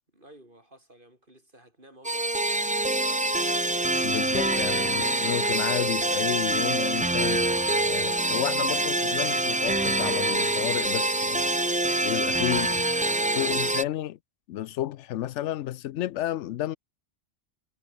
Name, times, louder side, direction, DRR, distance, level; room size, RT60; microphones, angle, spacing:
voice 1, 0.1-3.7 12.4-12.7 13.2-13.6, right 1 dB, 45° right, 7.7 m, -52 dB
sound 1, 2.0-13.8, right 2 dB, 10° right, 0.4 m, -25 dB
voice 2, 4.0-7.5 7.9-11.5 12.0-12.7 13.4-14.2 14.5-16.8, left 13 dB, 85° left, 0.9 m, -31 dB
omnidirectional pair, 1.2 m